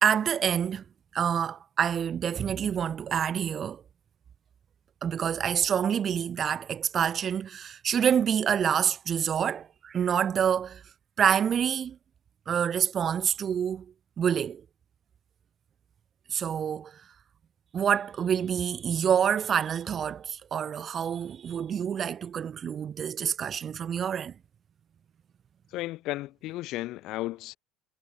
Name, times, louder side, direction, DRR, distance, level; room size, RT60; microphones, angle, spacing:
voice 1, 0.0-0.8 1.1-3.8 5.0-10.8 11.2-12.0 12.5-13.9 14.2-14.6 16.3-17.0 17.7-24.3, right 8 dB, 35° right, 1.2 m, -27 dB
voice 2, 25.7-27.6, left 17 dB, 60° left, 3.2 m, -34 dB
cardioid pair, 135°, 0 cm